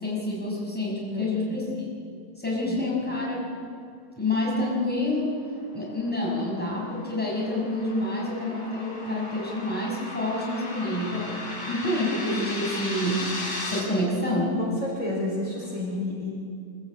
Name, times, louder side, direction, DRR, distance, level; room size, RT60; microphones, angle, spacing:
voice 1, 0.0-1.9 2.4-3.5 4.2-5.4 5.7-13.3 13.6-14.6, left 1 dB, 5° left, -4 dB, 5.9 m, -28 dB
voice 2, 1.1-1.6 2.6-2.8 14.6-16.3, left 2 dB, 50° left, -4 dB, 4.9 m, -31 dB
sound 1, 6.1-13.8, left 2 dB, 80° left, 4.7 m, -36 dB
25.0 x 15.5 x 8.7 m, 2.3 s
omnidirectional pair, 1.8 m